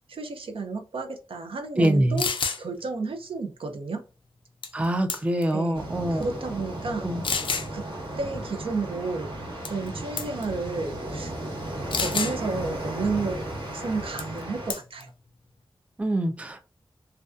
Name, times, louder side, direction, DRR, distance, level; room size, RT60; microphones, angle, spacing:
voice 1, 0.1-2.3 2.6-4.0 5.5-7.1 7.7-7.8 8.2-9.3 9.7-11.3 12.0-13.4 13.7-15.1, right 3 dB, 80° right, 5 dB, 0.5 m, -31 dB
sound 1, 1.8-1.9 2.2-2.6 4.6-4.8 5.1-5.5 6.2-6.3 7.2-7.7 9.6-9.9 10.2-10.4 11.9-12.4 14.2-14.4 14.7-15.0, left 5 dB, 70° left, 0.3 m, -28 dB
voice 2, 1.8-2.2 4.7-6.2 7.0-7.2 16.0-16.6, right 1 dB, 15° right, 7 dB, 0.3 m, -24 dB
sound 2, 5.7-14.7, right 1 dB, 65° right, 1.0 m, -35 dB
2.5 x 2.2 x 2.3 m, 0.34 s
wide cardioid pair, 70°, 9 cm